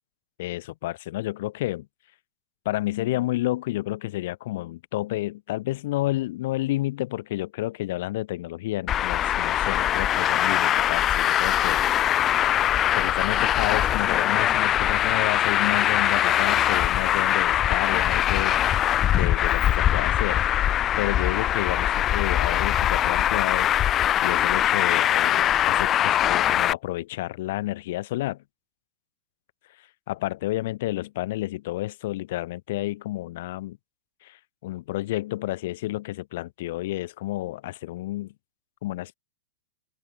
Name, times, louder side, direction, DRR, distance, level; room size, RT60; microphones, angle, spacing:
voice 1, 0.4-1.9 2.6-12.3 12.9-20.4 21.0-23.7 24.2-28.4 29.8-33.8 34.2-38.3 38.8-39.1, left 16 dB, 60° left, 0.9 m, -30 dB
Traffic noise roadway noise, 8.9-26.7, left 11 dB, 30° left, 0.8 m, -22 dB
open air
hypercardioid pair, 140°, 0 cm